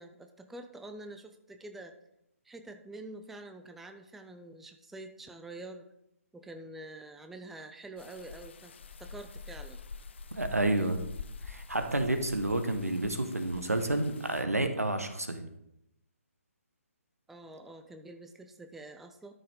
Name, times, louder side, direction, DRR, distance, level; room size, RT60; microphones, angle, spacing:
voice 1, 0.0-1.9 2.4-5.9 6.3-8.7 9.0-9.8 10.7-11.0 17.3-19.3, right 2 dB, 5° right, 6 dB, 0.4 m, -46 dB
sound 1, 8.0-14.4, left 4 dB, 50° left, 0.6 m, -46 dB
voice 2, 10.3-11.0 11.4-15.4, right 2 dB, 85° right, 8 dB, 1.4 m, -30 dB
13.0 x 5.5 x 3.8 m, 0.83 s
figure-of-eight pair, 140°, 8 cm